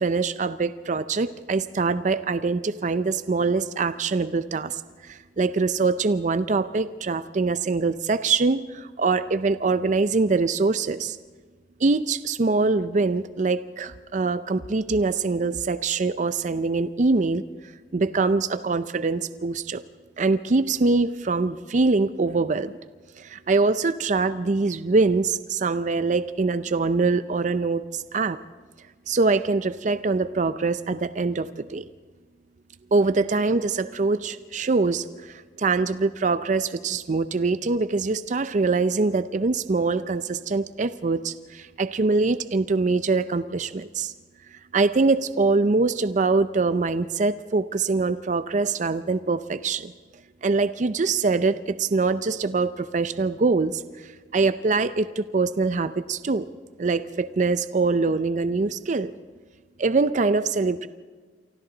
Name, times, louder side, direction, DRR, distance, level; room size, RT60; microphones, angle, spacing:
voice 1, 0.0-11.2 11.8-17.4 17.9-19.8 20.2-22.7 23.2-28.4 29.1-31.8 32.9-44.1 44.5-49.9 50.4-56.5 56.8-59.1 59.8-60.9, right 3 dB, 45° right, 13 dB, 0.5 m, -24 dB
28.0 x 24.5 x 3.9 m, 1.5 s
head